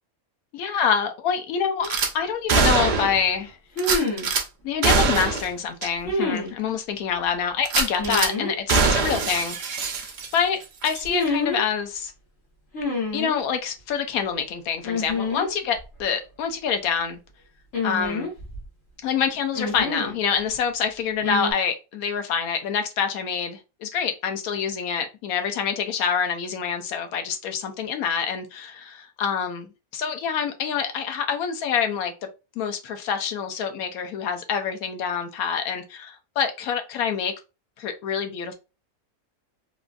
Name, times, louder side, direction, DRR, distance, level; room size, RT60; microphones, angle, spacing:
voice 1, 0.5-1.9 2.1-3.6 4.6-10.0 10.3-12.1 13.1-17.2 17.8-18.3 19.0-29.7 29.9-32.1 32.6-37.3 37.8-38.5, left 7 dB, 85° left, 1.1 m, -26 dB
sound 1, 1.8-1.9 3.8-4.3 6.0-6.5 8.0-8.5 11.0-11.6 12.7-13.4 14.8-15.5 15.8-15.9 17.7-18.7 19.6-20.2 21.2-21.5, left 2 dB, 60° left, 1.5 m, -27 dB
Gunshot gunfire / Glass, 1.8-2.1 2.5-3.3 3.8-4.4 4.8-5.5 5.8-5.9 6.4-6.5 7.6-8.3 8.7-10.5 10.8-11.0, right 4 dB, 70° right, 0.4 m, -23 dB
3.6 x 2.3 x 2.5 m
omnidirectional pair, 1.5 m